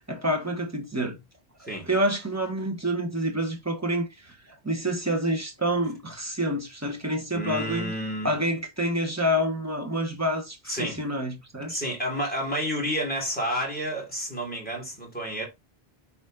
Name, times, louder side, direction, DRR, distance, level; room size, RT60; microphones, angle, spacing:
voice 1, 0.1-1.2 1.8-4.4 4.6-7.9 8.2-11.8, equal, 15° right, 1.4 m, -28 dB
voice 2, 7.3-8.4 10.7-11.0 11.7-15.4, equal, 10° left, 3.0 m, -30 dB
6.8 x 4.3 x 3.8 m
omnidirectional pair, 1.1 m